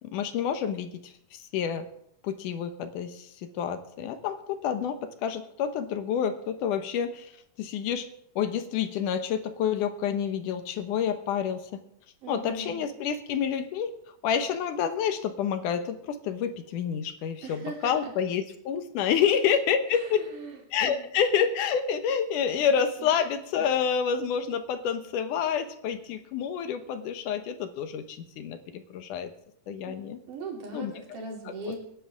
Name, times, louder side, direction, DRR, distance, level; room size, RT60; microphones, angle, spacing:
voice 1, 0.0-1.9 2.2-7.3 7.6-8.1 8.4-11.8 12.3-13.9 14.2-20.2 20.7-29.3 29.7-30.2 30.7-30.9 31.5-31.7, left 8 dB, 75° left, 9 dB, 2.5 m, -28 dB
voice 2, 12.2-12.8 17.4-17.9 19.9-20.5 20.9-21.0 29.9-30.0 30.3-31.8, right 3 dB, 75° right, 0 dB, 4.6 m, -39 dB
25.5 x 10.0 x 3.6 m, 0.71 s
omnidirectional pair, 3.7 m